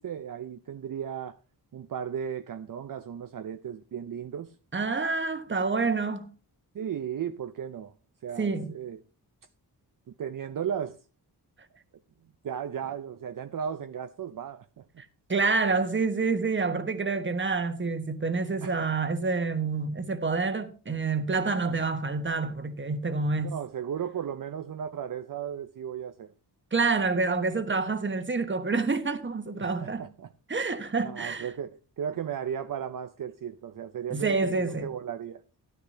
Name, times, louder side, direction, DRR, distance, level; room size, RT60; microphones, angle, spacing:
voice 1, 0.0-1.4 1.7-4.5 6.7-7.9 8.2-9.0 10.1-11.0 12.4-15.0 18.6-18.8 23.4-26.3 29.6-30.3 31.0-31.7 32.0-35.4, right 8 dB, 55° right, 0.6 m, -35 dB
voice 2, 4.7-6.3 8.4-8.7 15.3-23.5 26.7-30.1 30.5-31.5 34.1-34.9, right 4 dB, 30° right, 1.3 m, -28 dB
13.5 x 12.0 x 2.8 m
wide cardioid pair, 110°, 39 cm